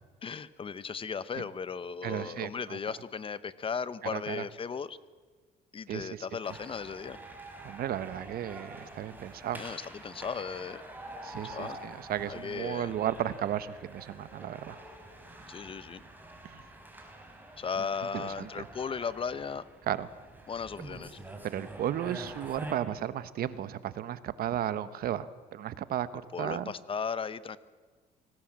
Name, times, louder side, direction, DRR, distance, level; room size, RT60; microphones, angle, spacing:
voice 1, 0.2-5.0 5.7-7.2 9.5-10.8 11.4-11.8 12.3-12.9 15.5-16.0 17.6-19.6 20.5-21.2 26.3-27.6, left 6 dB, 30° left, 16 dB, 0.9 m, -36 dB
voice 2, 2.0-2.8 4.1-4.4 5.9-6.3 7.6-9.6 11.2-14.8 16.4-16.6 18.1-18.7 19.9-20.1 21.4-26.7, right 11 dB, 65° right, 15 dB, 1.1 m, -34 dB
sound 1, 6.4-22.7, right 1 dB, 10° right, 4.4 m, -47 dB
25.0 x 18.5 x 7.5 m, 1.4 s
cardioid pair, 110°, 17 cm